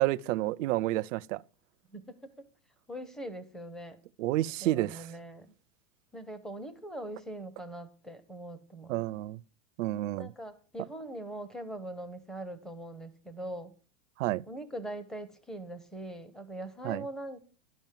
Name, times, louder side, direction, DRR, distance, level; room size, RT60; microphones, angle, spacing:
voice 1, 0.0-1.4 4.2-5.1 8.9-9.4 9.8-10.3 14.2-14.4 16.8-17.0, right 16 dB, 60° right, 0.5 m, -30 dB
voice 2, 1.9-2.5 2.9-4.0 4.6-5.5 6.1-9.0 10.2-13.7 14.5-17.4, right 1 dB, ahead, 0.5 m, -42 dB
12.0 x 5.2 x 7.3 m
supercardioid pair, 140°, 42 cm